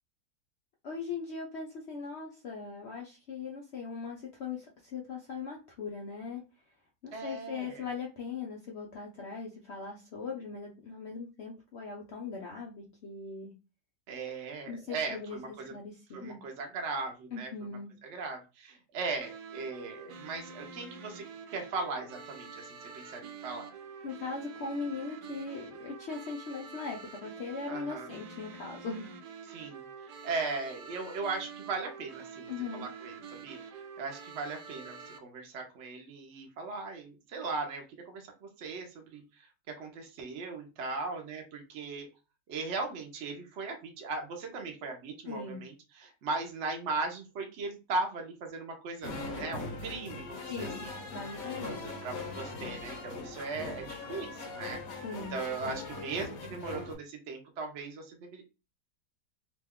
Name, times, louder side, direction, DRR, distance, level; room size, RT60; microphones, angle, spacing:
voice 1, 0.8-6.4 7.0-13.5 14.7-15.4 15.7-16.4 17.3-17.9 24.0-29.1 32.5-32.9 45.2-45.6 50.5-51.8 55.0-55.4, left 4 dB, 80° left, -1 dB, 0.5 m, -40 dB
voice 2, 7.1-7.9 14.1-15.7 16.1-21.3 21.5-23.7 27.7-28.1 29.5-33.1 33.4-39.2 39.7-42.1 42.5-51.1 51.6-55.0 55.3-58.4, right 3 dB, 55° right, 2 dB, 0.8 m, -38 dB
sound 1, 19.2-35.2, right 5 dB, 75° right, 1.1 m, -47 dB
sound 2, 49.0-56.9, left 3 dB, 60° left, 1.1 m, -40 dB
2.9 x 2.2 x 3.4 m, 0.29 s
omnidirectional pair, 1.8 m